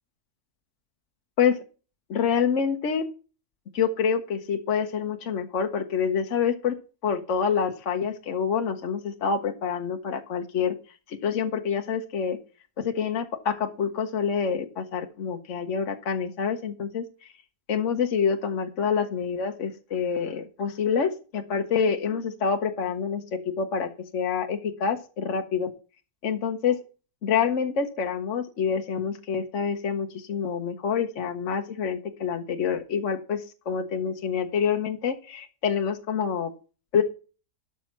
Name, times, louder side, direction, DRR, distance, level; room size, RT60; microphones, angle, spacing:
voice 1, 2.1-3.0 3.7-6.7 7.0-10.7 11.1-12.4 12.8-17.3 17.7-25.7 26.2-26.8 27.2-36.5 36.9-37.0, left 6 dB, 55° left, 5 dB, 1.2 m, -27 dB
12.0 x 6.2 x 5.7 m, 0.36 s
omnidirectional pair, 1.6 m